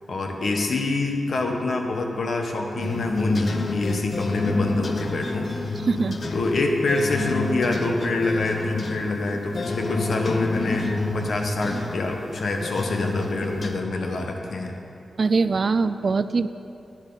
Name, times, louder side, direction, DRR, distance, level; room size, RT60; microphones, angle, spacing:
voice 1, 0.1-5.5 6.3-14.7, left 2 dB, 65° left, 2 dB, 1.1 m, -26 dB
sound 1, 2.8-13.8, left 2 dB, 45° left, 0.7 m, -29 dB
voice 2, 5.9-6.2 15.2-16.5, right 4 dB, 45° right, 12 dB, 0.3 m, -22 dB
10.5 x 10.0 x 4.0 m, 2.6 s
wide cardioid pair, 130°, 0 cm